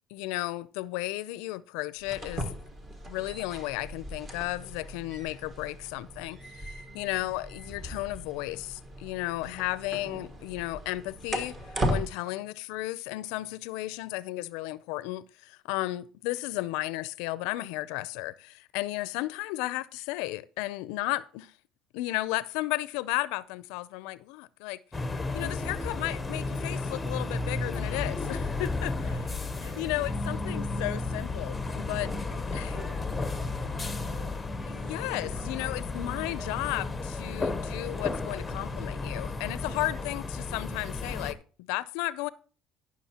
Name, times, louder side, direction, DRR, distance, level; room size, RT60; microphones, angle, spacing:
voice 1, 0.1-2.5 3.1-21.5 21.9-24.8 25.3-28.9 29.8-32.1 32.5-32.7 34.7-42.3, left 18 dB, 90° left, 0.4 m, -34 dB
sound 1, 2.0-12.1, equal, 25° right, 1.3 m, -37 dB
sound 2, 24.9-41.3, left 3 dB, 10° left, 0.7 m, -33 dB
voice 2, 28.9-29.9 31.6-34.7 35.1-35.7 39.6-40.0, right 3 dB, 60° right, 4.9 m, -50 dB
17.5 x 6.0 x 2.9 m
cardioid pair, 135°, 0 cm